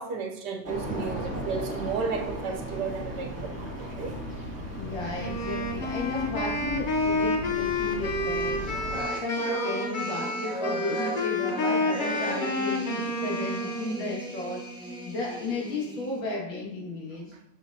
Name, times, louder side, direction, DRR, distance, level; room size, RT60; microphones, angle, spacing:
voice 1, 0.0-4.2, right 5 dB, 70° right, 1.2 m, -33 dB
sound 1, 0.6-9.0, equal, 25° right, 1.3 m, -36 dB
voice 2, 4.8-8.9 9.2-14.6 15.1-17.3, left 3 dB, 85° left, 2.6 m, -34 dB
Wind instrument woodwind instrument, 5.2-14.0, left 2 dB, 65° left, 0.4 m, -29 dB
sound 2, 8.3-16.2, equal, 5° right, 0.8 m, -37 dB
7.2 x 6.0 x 2.7 m
omnidirectional pair, 2.0 m